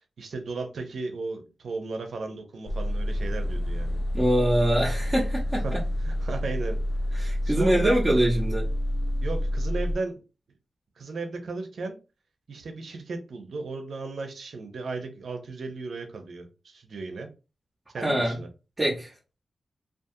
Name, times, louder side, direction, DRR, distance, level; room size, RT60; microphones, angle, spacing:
voice 1, 0.0-4.0 5.6-5.8 6.0-6.8 7.1-8.0 9.2-10.2 11.0-12.0 12.5-17.3 17.9-18.5, right 3 dB, 75° right, 0.5 m, -35 dB
sound 1, 2.7-9.9, equal, 60° left, 0.3 m, -28 dB
voice 2, 4.1-5.8 7.2-8.7 18.0-18.4 18.8-19.1, right 1 dB, 25° right, 0.8 m, -24 dB
2.4 x 2.4 x 2.6 m
cardioid pair, 60°, 0 cm